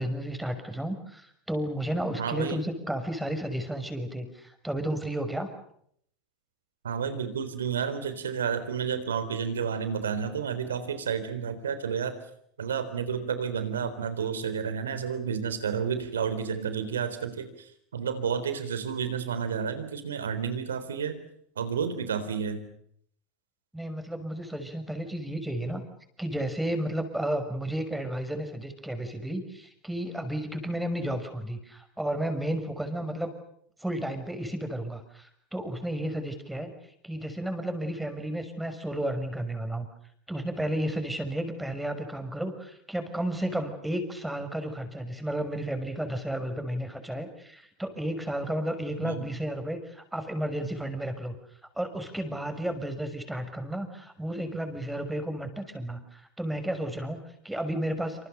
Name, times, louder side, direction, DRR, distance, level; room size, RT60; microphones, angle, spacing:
voice 1, 0.0-5.5 23.7-25.9 26.2-33.3 33.8-36.7 37.0-39.9 40.3-51.3 51.7-58.3, right 1 dB, 5° right, 7 dB, 6.1 m, -32 dB
voice 2, 2.2-2.6 6.8-12.1 12.6-21.2 21.6-22.6 49.0-49.2, right 7 dB, 85° right, 11 dB, 3.8 m, -31 dB
27.5 x 26.5 x 6.8 m, 0.69 s
hypercardioid pair, 85°, 0 cm